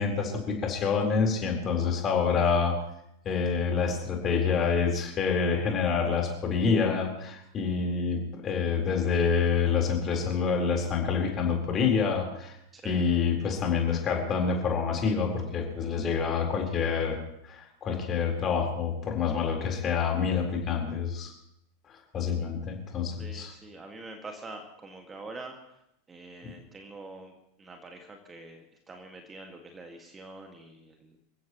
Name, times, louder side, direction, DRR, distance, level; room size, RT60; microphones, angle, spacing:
voice 1, 0.0-2.8 3.2-12.5 12.8-17.2 17.4-21.3 22.1-23.5 26.4-26.5, left 5 dB, 25° left, 1 dB, 4.2 m, -27 dB
voice 2, 23.2-25.8 26.1-27.3 27.6-31.2, right 2 dB, 15° right, 4 dB, 1.9 m, -45 dB
27.5 x 15.5 x 3.1 m, 0.78 s
figure-of-eight pair, 90°, 0 cm